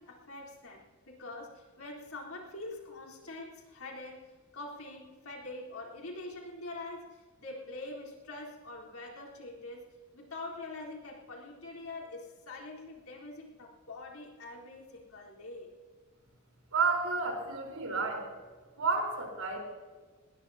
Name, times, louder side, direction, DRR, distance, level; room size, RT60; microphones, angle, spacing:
voice 1, 0.0-15.7, left 2 dB, 75° left, -2 dB, 4.0 m, -44 dB
voice 2, 16.7-18.3 18.8-19.6, right 4 dB, 75° right, 2 dB, 4.3 m, -31 dB
20.0 x 19.5 x 2.8 m, 1.4 s
head